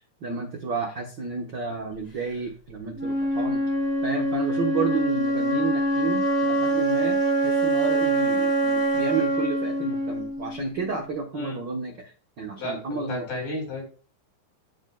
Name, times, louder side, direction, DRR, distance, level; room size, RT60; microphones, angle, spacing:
voice 1, 0.2-3.6 4.0-13.3, right 4 dB, 75° right, 2 dB, 1.0 m, -31 dB
Wind instrument woodwind instrument, 3.0-11.0, right 1 dB, 30° left, 3.0 m, -24 dB
voice 2, 12.6-13.8, left 1 dB, 75° left, -2 dB, 5.8 m, -33 dB
16.0 x 5.4 x 2.2 m, 0.37 s
omnidirectional pair, 3.6 m